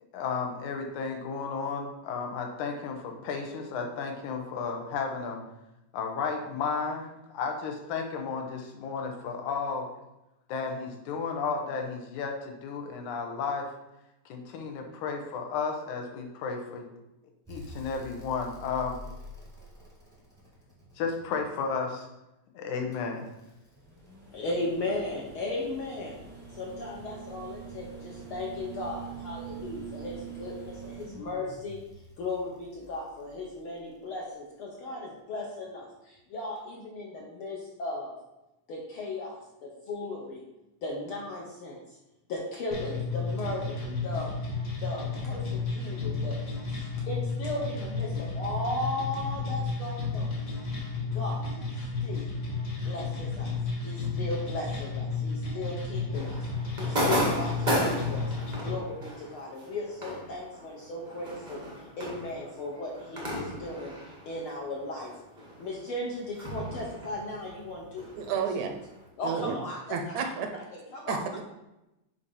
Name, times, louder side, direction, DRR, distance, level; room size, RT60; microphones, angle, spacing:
voice 1, 0.1-5.4 5.9-7.1 7.3-9.9 10.5-13.7 14.3-16.9 17.5-19.0 21.0-22.1 22.5-23.3, left 5 dB, 85° left, 3 dB, 2.4 m, -33 dB
sound 1, 17.5-21.6 22.9-34.1 35.7-35.8, right 4 dB, ahead, 0.8 m, -45 dB
voice 2, 24.3-26.1 26.5-31.8 32.2-38.2 38.7-40.4 40.8-42.0 42.3-44.3 44.8-50.3 51.1-51.5 52.0-52.4 52.8-53.5 53.8-56.4 56.8-58.3 58.6-63.9 64.3-65.1 65.6-68.4 69.2-71.3, left 2 dB, 65° left, -2 dB, 1.3 m, -36 dB
sound 2, 42.7-58.7, left 4 dB, 50° left, 1.2 m, -32 dB
sound 3, 56.1-65.1 65.4-68.9, equal, 55° right, 0.5 m, -34 dB
voice 3, 68.1-68.7 69.2-69.6 69.9-70.5 71.1-71.4, right 6 dB, 75° right, 5 dB, 1.8 m, -31 dB
8.0 x 2.8 x 5.4 m, 0.93 s
omnidirectional pair, 3.4 m